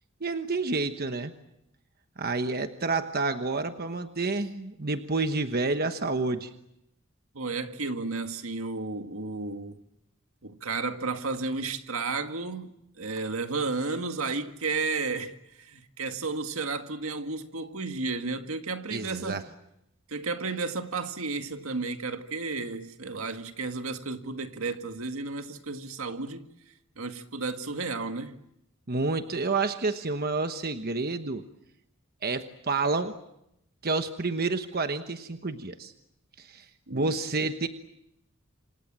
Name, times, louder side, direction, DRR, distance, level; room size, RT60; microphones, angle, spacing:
voice 1, 0.2-1.3 2.2-6.5 18.9-19.4 28.9-31.4 32.2-33.1 33.8-35.9 36.4-37.7, right 3 dB, 45° right, 1.2 m, -29 dB
voice 2, 7.4-9.8 10.4-19.4 20.1-26.5 27.0-28.4 36.9-37.1, right 3 dB, 75° right, 1.8 m, -33 dB
27.0 x 27.0 x 7.5 m
head